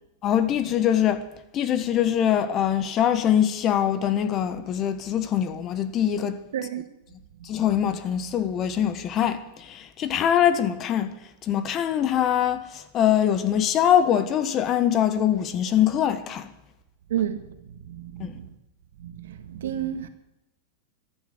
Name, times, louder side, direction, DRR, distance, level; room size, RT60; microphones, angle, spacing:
voice 1, 0.2-1.2 1.5-6.4 7.4-11.1 11.4-16.5 18.2-18.3, left 10 dB, 35° left, 1.5 m, -23 dB
voice 2, 6.5-6.9 17.1-17.5 17.9-18.5 19.0-20.1, right 10 dB, 80° right, 1.8 m, -30 dB
14.5 x 11.5 x 8.1 m
hypercardioid pair, 130°, 0 cm